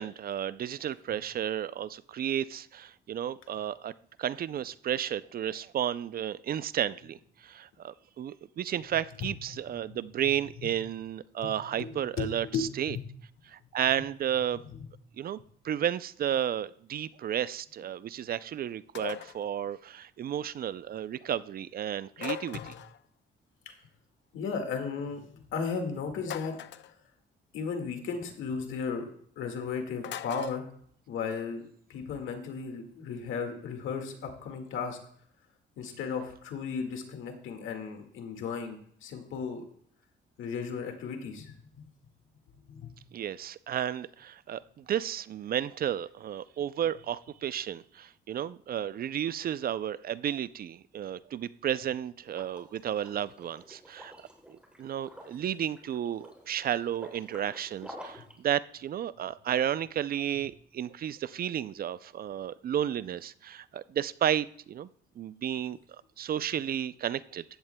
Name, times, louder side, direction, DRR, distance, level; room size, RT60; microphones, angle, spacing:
voice 1, 0.0-3.9 4.2-7.2 7.4-13.0 13.5-14.6 15.2-15.4 15.6-22.7 43.1-54.1 54.5-64.9 65.2-65.8 66.2-67.4, right 10 dB, 50° right, 17 dB, 0.4 m, -32 dB
voice 2, 11.4-13.0 14.7-14.9 22.5-22.7 23.7-23.8 24.3-26.6 27.5-29.1 29.4-30.7 31.1-31.6 31.9-35.0 35.8-39.6 40.4-41.9 42.7-43.0 58.2-58.3, left 5 dB, 80° left, 5 dB, 1.9 m, -35 dB
sound 1, 18.9-19.4 22.2-23.0 26.2-26.9 30.0-30.6, left 10 dB, 65° left, 0.5 m, -39 dB
Liquid, 52.3-58.4, equal, 5° right, 2.9 m, -50 dB
15.0 x 11.0 x 2.2 m, 0.62 s
cardioid pair, 90°, 20 cm